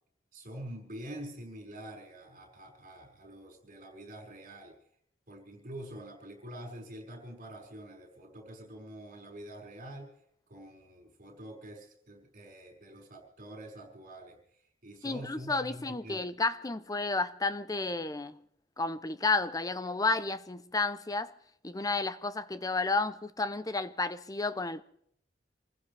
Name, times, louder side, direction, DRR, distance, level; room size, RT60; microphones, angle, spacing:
voice 1, 0.3-4.7 5.3-10.1 10.5-14.4 14.8-16.3, right 1 dB, 45° right, 5.5 m, -46 dB
voice 2, 15.0-18.4 18.8-21.3 21.6-24.8, left 3 dB, 20° left, 0.7 m, -31 dB
27.5 x 15.5 x 3.4 m
head